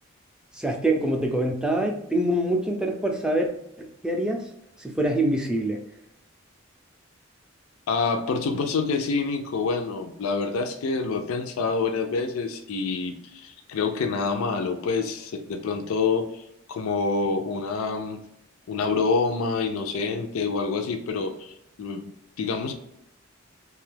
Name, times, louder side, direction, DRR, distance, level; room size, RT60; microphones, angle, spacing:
voice 1, 0.5-3.5 3.8-4.5 4.8-5.8, right 1 dB, 5° right, 2 dB, 0.3 m, -25 dB
voice 2, 7.9-18.2 18.7-22.7, left 4 dB, 85° left, 6 dB, 0.4 m, -27 dB
2.6 x 2.2 x 3.3 m, 0.80 s
head